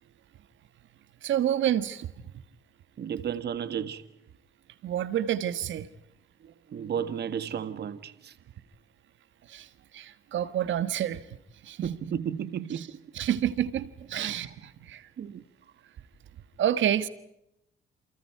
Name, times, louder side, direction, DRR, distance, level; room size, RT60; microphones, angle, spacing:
voice 1, 1.2-2.1 4.8-5.9 9.5-9.7 9.9-11.2 11.6-11.9 12.7-12.9 13.1-14.5 14.8-15.1 16.6-17.1, right 10 dB, 70° right, 1.5 m, -28 dB
voice 2, 3.0-4.0 6.4-8.3 11.8-13.0 14.1-14.4 15.2-15.4, right 8 dB, 55° right, 1.4 m, -33 dB
29.0 x 28.5 x 4.7 m
cardioid pair, 90°, 20 cm